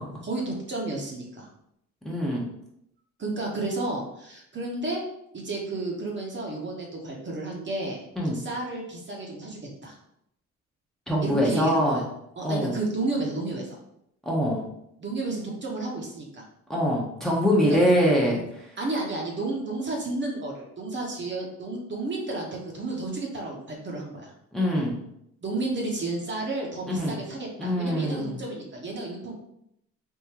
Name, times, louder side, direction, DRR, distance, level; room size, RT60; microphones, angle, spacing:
voice 1, 0.2-1.5 3.2-5.0 5.3-8.0 8.3-9.9 11.2-12.1 12.4-13.7 15.0-16.4 17.7-17.8 18.8-24.3 25.4-29.3, right 2 dB, 40° right, -1 dB, 1.0 m, -32 dB
voice 2, 2.0-2.5 8.2-8.4 11.1-12.0 12.4-12.8 14.3-14.6 16.7-18.6 24.5-25.0 26.9-27.1 27.6-28.4, equal, ahead, -4 dB, 0.8 m, -24 dB
3.6 x 2.6 x 2.9 m, 0.76 s
cardioid pair, 90°, 30 cm